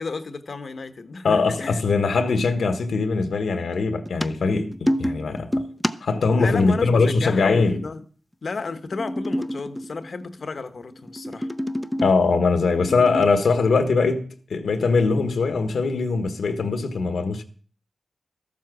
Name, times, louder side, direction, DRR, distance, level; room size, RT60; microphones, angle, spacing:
voice 1, 0.0-1.8 6.3-8.0 8.4-11.5, left 4 dB, 55° left, 1.0 m, -32 dB
voice 2, 1.2-5.6 6.0-7.8 12.0-17.4, left 4 dB, 85° left, 1.4 m, -21 dB
sound 1, 4.0-6.3 8.6-10.4 10.9-12.2 12.7-13.3, equal, 5° left, 0.6 m, -28 dB
13.5 x 7.6 x 6.1 m
wide cardioid pair, 120°, 0 cm